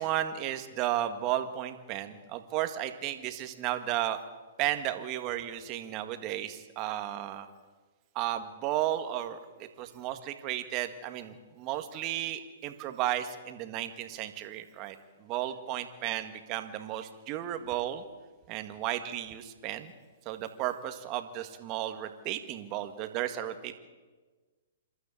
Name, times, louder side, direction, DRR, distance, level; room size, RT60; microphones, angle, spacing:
voice 1, 0.0-4.2 4.6-7.5 8.2-9.4 9.8-18.0 18.5-19.9 20.3-23.8, right 12 dB, 35° right, 8 dB, 1.9 m, -34 dB
27.0 x 12.5 x 8.6 m, 1.3 s
hypercardioid pair, 125°, 0 cm